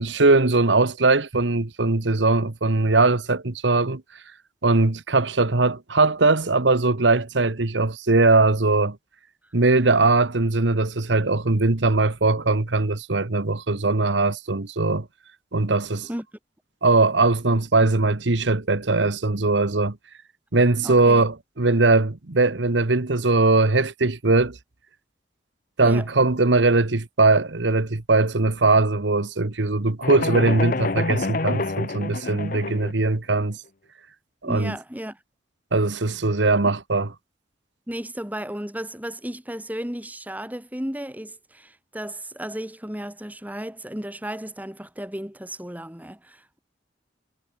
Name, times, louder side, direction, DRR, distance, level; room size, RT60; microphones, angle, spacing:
voice 1, 0.0-4.0 4.6-9.0 9.5-15.1 15.5-16.1 16.8-20.0 20.5-24.6 25.8-33.6 34.4-34.7 35.7-37.1, right 3 dB, 80° right, 1.3 m, -20 dB
voice 2, 20.8-21.2 25.8-26.1 34.4-35.2 37.9-46.6, right 1 dB, 10° right, 2.9 m, -34 dB
sound 1, 30.0-32.9, left 3 dB, 50° left, 0.9 m, -27 dB
head